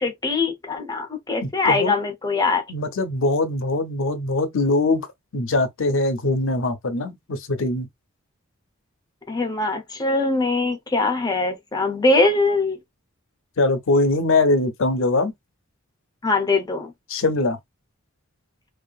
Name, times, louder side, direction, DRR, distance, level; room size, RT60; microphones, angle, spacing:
voice 1, 0.0-2.6 9.3-12.8 16.2-16.9, left 3 dB, 20° left, 0.7 m, -22 dB
voice 2, 1.4-1.9 2.7-5.1 5.3-7.9 13.6-15.3 17.1-17.6, left 2 dB, 65° left, 0.6 m, -22 dB
2.7 x 2.4 x 2.3 m
head